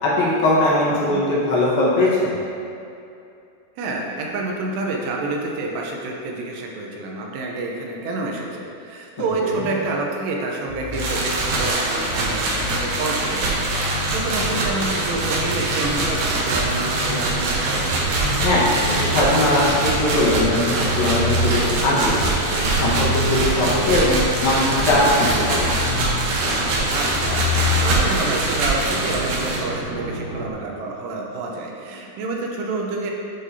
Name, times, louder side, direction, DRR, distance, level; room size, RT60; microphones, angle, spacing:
voice 1, 0.0-2.3 9.4-9.6 18.4-22.3 22.7-24.2 24.4-25.7, left 1 dB, 65° left, -7 dB, 2.9 m, -20 dB
voice 2, 3.8-17.9 26.9-33.1, right 2 dB, 85° right, 0 dB, 3.0 m, -28 dB
sound 1, 10.7-28.2, left 3 dB, 85° left, 2.8 m, -30 dB
sound 2, 10.9-29.6, right 2 dB, 70° right, 2.5 m, -23 dB
sound 3, 14.3-30.5, right 2 dB, 50° right, 2.0 m, -32 dB
11.0 x 5.2 x 2.8 m, 2.7 s
omnidirectional pair, 4.8 m